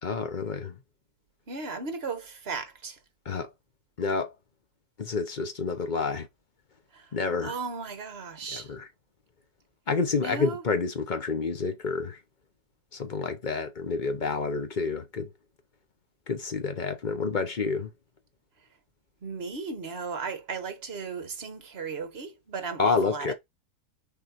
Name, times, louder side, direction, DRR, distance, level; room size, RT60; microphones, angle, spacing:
voice 1, 0.0-0.7 3.3-3.5 4.0-4.3 5.0-6.3 7.1-7.5 8.5-8.9 9.9-12.2 12.9-15.3 16.3-17.9 22.8-23.3, left 4 dB, 40° left, 0.8 m, -29 dB
voice 2, 1.5-3.0 6.9-7.2 7.4-8.7 10.1-10.6 19.2-23.3, right 4 dB, 45° right, 1.4 m, -36 dB
6.3 x 4.1 x 4.3 m
omnidirectional pair, 1.6 m